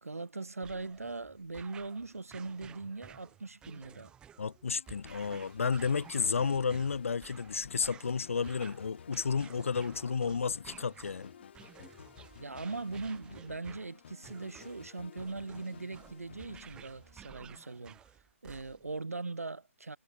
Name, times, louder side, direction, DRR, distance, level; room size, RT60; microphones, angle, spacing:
voice 1, 0.0-4.1 12.4-18.0 18.4-20.0, right 3 dB, 80° right, 1.8 m, -40 dB
sound 1, 0.6-19.0, right 9 dB, 10° right, 1.2 m, -55 dB
voice 2, 4.4-11.3, left 5 dB, 65° left, 1.1 m, -32 dB
sound 2, 4.7-17.6, left 8 dB, 50° left, 3.5 m, -54 dB
figure-of-eight pair, 140°, 8 cm